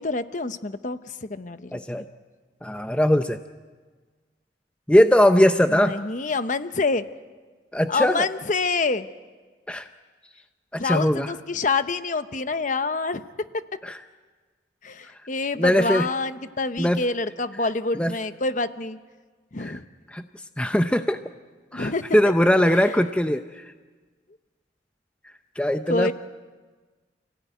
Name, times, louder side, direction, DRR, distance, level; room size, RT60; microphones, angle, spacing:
voice 1, 0.0-1.8 5.7-7.0 7.9-9.1 10.7-13.6 14.8-19.0 19.5-19.8 21.7-22.2 22.8-23.0 25.9-26.1, left 3 dB, 45° left, 11 dB, 0.9 m, -27 dB
voice 2, 1.7-2.0 2.6-3.4 4.9-6.0 7.7-8.3 9.7-9.9 10.7-11.3 13.8-14.0 15.6-16.1 16.8-17.0 17.9-18.1 19.6-19.8 20.1-20.2 20.6-21.2 21.7-23.7 25.6-26.1, equal, 5° left, 8 dB, 0.7 m, -20 dB
29.0 x 17.0 x 9.3 m, 1.4 s
head